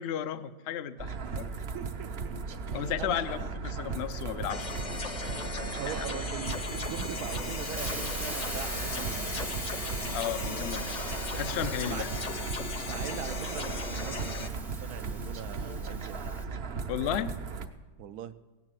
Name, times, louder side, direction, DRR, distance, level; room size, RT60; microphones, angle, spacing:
voice 1, 0.0-1.5 2.7-4.9 5.9-6.0 10.1-11.0 11.3-12.1 16.9-17.3, left 10 dB, 75° left, 10 dB, 0.6 m, -34 dB
sound 1, 1.0-17.7, right 4 dB, 50° right, 0.7 m, -37 dB
voice 2, 1.7-2.3 2.7-3.2 3.4-3.5 5.6-9.6 11.9-12.1 12.8-16.2 18.0-18.3, right 10 dB, 70° right, 12 dB, 1.1 m, -42 dB
sound 2, 4.5-14.5, left 4 dB, 35° left, 0.7 m, -38 dB
Hiss, 6.4-16.4, equal, ahead, 0.6 m, -42 dB
16.5 x 9.8 x 7.6 m, 1.3 s
omnidirectional pair, 1.8 m